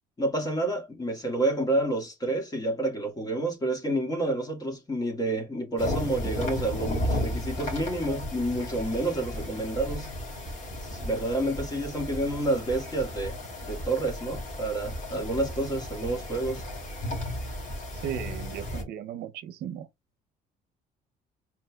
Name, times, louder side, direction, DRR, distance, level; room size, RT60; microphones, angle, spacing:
voice 1, 0.2-10.1 10.8-13.4 13.7-16.6, right 2 dB, 20° left, 1.9 m, -29 dB
sound 1, 5.8-18.8, left 1 dB, 45° left, 2.7 m, -34 dB
voice 2, 18.0-19.9, right 10 dB, 70° right, 0.7 m, -36 dB
4.5 x 4.3 x 2.3 m
cardioid pair, 110°, 17 cm